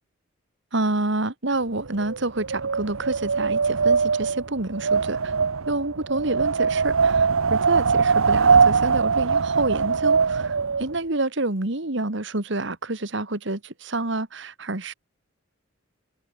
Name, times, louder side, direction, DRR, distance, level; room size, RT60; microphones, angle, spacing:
voice 1, 0.7-5.3 5.7-14.9, right 2 dB, 60° right, 1.9 m, -28 dB
Wind, 1.7-10.9, right 5 dB, 85° right, 0.9 m, -22 dB
head